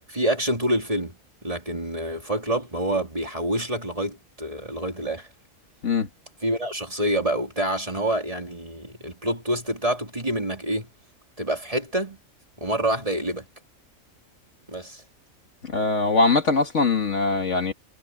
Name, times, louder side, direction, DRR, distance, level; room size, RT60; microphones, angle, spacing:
voice 1, 0.1-5.3 6.4-10.9 11.4-12.2 12.6-13.5 14.7-15.0, right 1 dB, 25° right, 3.4 m, -27 dB
voice 2, 15.6-17.7, left 3 dB, 60° left, 2.2 m, -22 dB
omnidirectional pair, 1.4 m